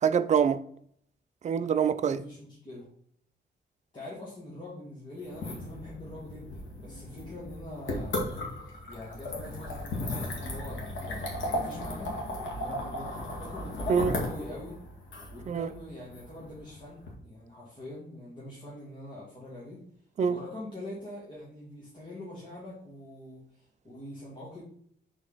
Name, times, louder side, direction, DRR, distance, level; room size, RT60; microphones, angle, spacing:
voice 1, 0.0-0.6 1.4-2.2 13.9-14.1 15.5-15.7 20.2-20.4, right 7 dB, 40° right, 0.4 m, -25 dB
voice 2, 2.1-2.9 3.9-8.3 8.6-11.3 11.5-12.1 12.6-14.7 15.3-19.8 20.2-24.6, left 1 dB, 25° left, 2.0 m, -44 dB
sound 1, 5.2-17.1, left 1 dB, 90° left, 1.9 m, -36 dB
6.9 x 4.0 x 4.0 m
wide cardioid pair, 150°, 19 cm